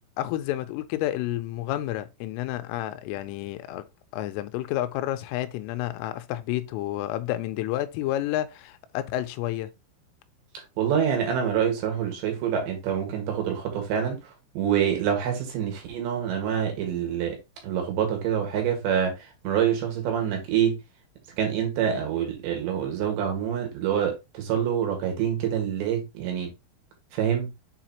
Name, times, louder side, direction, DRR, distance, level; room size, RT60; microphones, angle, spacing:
voice 1, 0.2-3.8 4.1-9.7, left 14 dB, 90° left, 3.3 m, -30 dB
voice 2, 10.8-14.2 14.6-17.4 17.6-19.1 19.4-20.8 21.4-26.5 27.1-27.5, right 8 dB, 70° right, 3.7 m, -26 dB
7.7 x 5.0 x 2.9 m
omnidirectional pair, 5.8 m